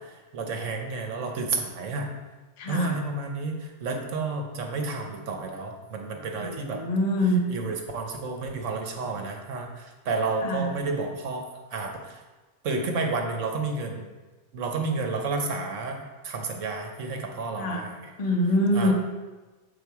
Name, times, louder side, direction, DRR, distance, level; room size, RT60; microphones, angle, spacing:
voice 1, 0.1-2.1 2.7-6.8 7.5-12.2 12.6-14.0 14.5-18.1 18.7-18.9, right 3 dB, 55° right, 3 dB, 1.1 m, -31 dB
voice 2, 2.6-2.9 6.4-7.4 10.4-10.7 17.6-17.8 18.2-18.9, left 1 dB, 35° left, 0 dB, 0.7 m, -25 dB
7.2 x 4.2 x 4.7 m, 1.2 s
omnidirectional pair, 1.7 m